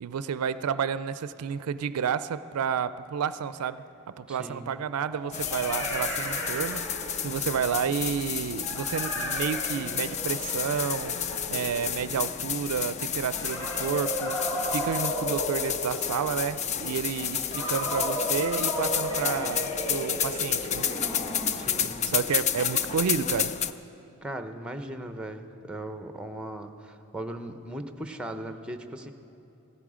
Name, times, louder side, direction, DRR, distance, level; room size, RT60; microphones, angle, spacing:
voice 1, 0.0-3.8 4.2-20.9 21.8-23.6, right 7 dB, 80° right, 14 dB, 0.4 m, -31 dB
sound 1, 3.5-3.6 5.0-7.4 8.6-12.1 13.3-16.3 17.5-21.8, equal, 15° left, 3.8 m, -34 dB
voice 2, 4.3-4.7 21.5-22.0 24.2-29.1, right 1 dB, 5° right, 7 dB, 0.7 m, -38 dB
sound 2, 5.3-23.7, left 8 dB, 30° left, 0.4 m, -31 dB
16.0 x 13.5 x 4.9 m, 3.0 s
head